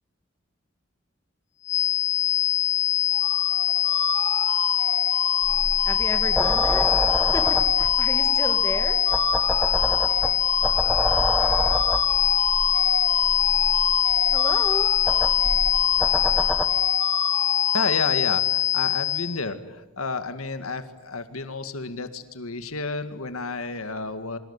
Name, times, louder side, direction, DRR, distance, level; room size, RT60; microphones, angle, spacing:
sound 1, 1.7-19.4, left 11 dB, 55° left, 1.0 m, -23 dB
sound 2, 3.1-18.4, right 6 dB, 65° right, 1.1 m, -32 dB
sound 3, 5.4-16.7, equal, ahead, 1.3 m, -29 dB
voice 1, 5.9-6.9 7.3-9.0 14.3-14.9, left 1 dB, 15° left, 6 dB, 2.0 m, -32 dB
voice 2, 17.7-24.4, left 3 dB, 85° left, 9 dB, 1.9 m, -31 dB
28.5 x 24.5 x 8.3 m, 1.1 s
head